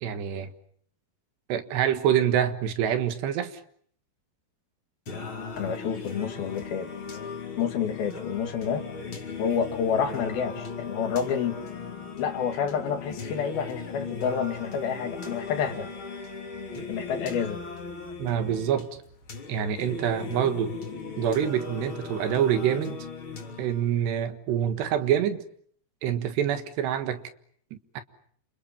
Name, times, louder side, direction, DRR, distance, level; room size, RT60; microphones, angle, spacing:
voice 1, 0.0-0.5 1.5-3.6 18.2-19.0 19.5-20.7 21.2-23.0 23.6-25.4 26.0-27.2 27.7-28.0, right 9 dB, 75° right, 3.6 m, -26 dB
Singing, 5.1-24.1, left 4 dB, 30° left, 3.5 m, -38 dB
voice 2, 5.6-6.9 7.6-8.8 9.4-11.6 12.2-15.9 16.9-17.6, left 7 dB, 65° left, 3.4 m, -29 dB
29.5 x 27.5 x 7.2 m
omnidirectional pair, 5.1 m